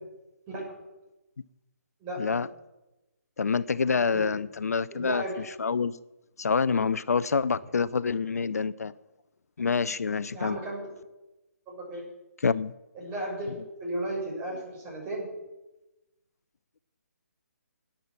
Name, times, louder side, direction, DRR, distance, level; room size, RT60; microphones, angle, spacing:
voice 1, 2.0-2.4 4.1-4.2 4.9-5.4 10.3-10.9 11.7-12.0 12.9-15.3, right 1 dB, 20° right, -3 dB, 6.3 m, -35 dB
voice 2, 3.4-5.2 5.6-5.9 6.4-8.9 9.6-10.6 12.4-12.7, left 5 dB, 70° left, 17 dB, 0.5 m, -26 dB
11.5 x 9.7 x 7.5 m, 1.0 s
figure-of-eight pair, 145°, 9 cm